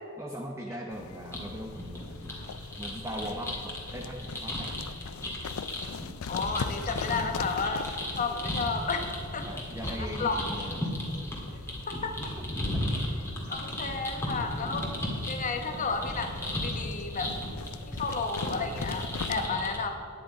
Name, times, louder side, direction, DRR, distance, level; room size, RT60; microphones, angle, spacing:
voice 1, 0.2-2.3 2.8-4.7 9.5-10.8 19.3-19.6, equal, 15° right, 0 dB, 0.7 m, -39 dB
sound 1, 0.9-19.5, left 6 dB, 75° left, 0.4 m, -42 dB
sound 2, 1.3-19.8, left 1 dB, 10° left, 2.1 m, -36 dB
voice 2, 6.3-9.6 9.9-10.4 11.9-12.3 13.5-14.9 15.3-17.4 17.9-19.9, left 4 dB, 40° left, 6 dB, 1.0 m, -32 dB
10.0 x 9.4 x 5.0 m, 2.8 s
head